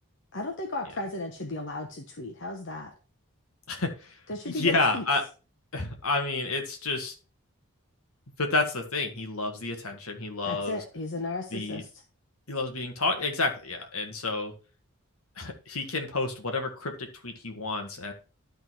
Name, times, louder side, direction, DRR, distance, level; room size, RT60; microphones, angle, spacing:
voice 1, 0.3-2.9 4.3-5.0 10.4-11.9, left 2 dB, 55° left, 2 dB, 1.1 m, -35 dB
voice 2, 3.7-4.2 4.5-5.2 5.7-7.1 8.4-10.8 11.5-11.8 12.5-14.5 15.4-18.1, left 3 dB, 75° left, 4 dB, 1.7 m, -30 dB
12.0 x 4.0 x 4.6 m, 0.34 s
head